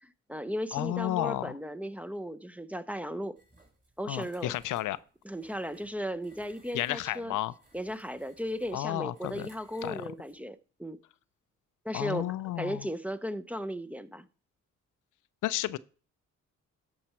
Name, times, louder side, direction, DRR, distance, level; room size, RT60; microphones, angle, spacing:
voice 1, 0.0-3.4 4.0-4.5 5.2-7.4 7.7-11.0 11.8-14.3, equal, 5° right, 0.6 m, -36 dB
voice 2, 0.7-1.6 4.0-5.0 6.7-7.5 8.7-9.5 9.8-10.0 11.9-12.9 15.4-15.8, left 14 dB, 80° left, 0.5 m, -32 dB
sound 1, 3.4-10.4, right 1 dB, 25° right, 3.1 m, -62 dB
13.5 x 5.7 x 4.3 m
cardioid pair, 75°, 30 cm